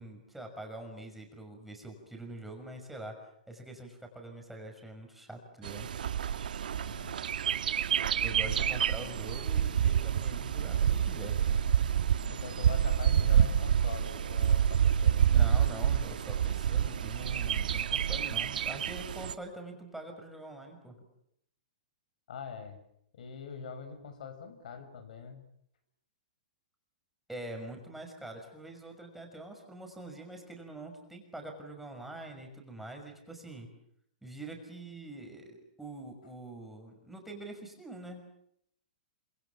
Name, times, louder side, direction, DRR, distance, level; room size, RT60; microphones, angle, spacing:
voice 1, 0.0-5.9 8.2-11.4 15.3-21.0 27.3-33.7 34.2-38.3, right 1 dB, 5° right, 2 dB, 6.0 m, -44 dB
Bird, 5.6-19.3, right 9 dB, 80° right, 1.4 m, -28 dB
voice 2, 6.8-7.2 7.9-8.8 12.3-15.3 22.3-22.8 23.1-25.4, left 6 dB, 70° left, 10 dB, 6.4 m, -44 dB
27.5 x 26.5 x 7.2 m, 0.72 s
hypercardioid pair, 145°, 5 cm